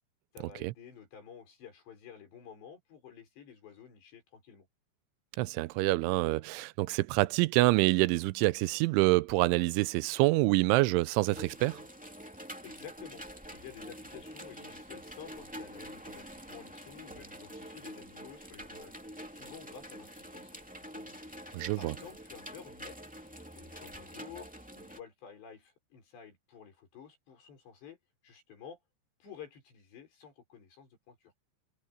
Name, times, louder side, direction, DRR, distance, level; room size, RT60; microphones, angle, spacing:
voice 1, 0.3-4.7 12.6-13.2 13.5-21.3 21.8-24.5 24.7-28.0 28.2-28.8 29.2-31.3, left 8 dB, 65° left, 8.1 m, -51 dB
voice 2, 5.4-11.8 21.5-22.0, right 21 dB, 85° right, 3.0 m, -26 dB
sound 1, 11.2-25.0, equal, 5° right, 0.6 m, -46 dB
omnidirectional pair, 5.4 m